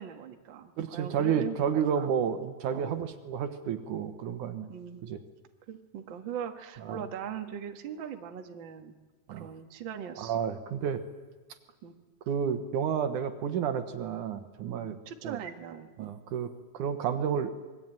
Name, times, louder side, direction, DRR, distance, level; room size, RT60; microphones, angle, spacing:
voice 1, 0.0-2.1 2.7-3.0 4.7-5.0 5.7-9.0 9.3-10.4 11.8-11.9 14.8-16.1, right 8 dB, 45° right, 6 dB, 1.8 m, -40 dB
voice 2, 0.8-4.7 5.0-5.2 6.8-7.0 9.3-9.5 10.2-11.0 12.3-15.0 15.2-15.4 16.0-17.5, right 7 dB, 75° right, 9 dB, 2.8 m, -31 dB
26.5 x 22.0 x 9.0 m, 1.2 s
omnidirectional pair, 3.7 m